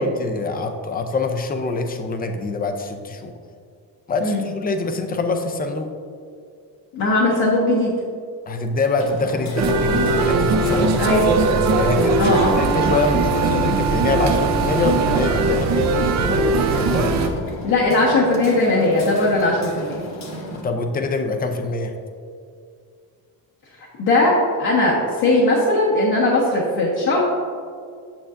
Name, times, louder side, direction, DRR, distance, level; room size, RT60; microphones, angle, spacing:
voice 1, 0.0-3.3 4.1-5.9 8.5-11.0 11.8-17.5 20.6-21.9, left 3 dB, 25° left, 6 dB, 0.5 m, -25 dB
voice 2, 6.9-7.9 11.0-11.2 12.2-12.6 17.6-20.0 24.0-27.2, left 2 dB, 65° left, -7 dB, 1.4 m, -18 dB
Hammer, 9.0-20.6, left 1 dB, 45° left, 1.0 m, -34 dB
sound 1, 9.6-17.3, right 3 dB, 45° right, 0.7 m, -20 dB
8.5 x 6.7 x 2.5 m, 2.2 s
cardioid pair, 145°, 39 cm